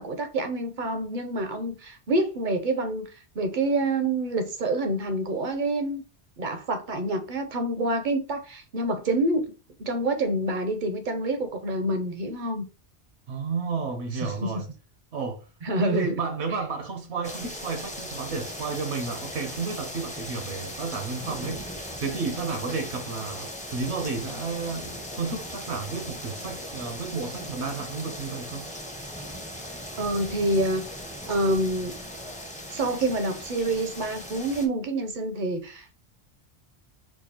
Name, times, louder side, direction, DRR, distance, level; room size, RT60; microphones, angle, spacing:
voice 1, 0.0-3.1 3.4-6.0 6.4-9.5 9.8-12.7 14.2-14.6 15.6-16.2 30.0-30.9 31.3-31.9 32.7-35.9, right 2 dB, 55° right, 0.6 m, -27 dB
voice 2, 13.3-14.7 15.1-15.4 15.8-28.7, right 4 dB, 75° right, 0.9 m, -32 dB
sound 1, 17.2-34.7, equal, 10° left, 0.4 m, -38 dB
4.5 x 2.3 x 2.8 m
omnidirectional pair, 1.2 m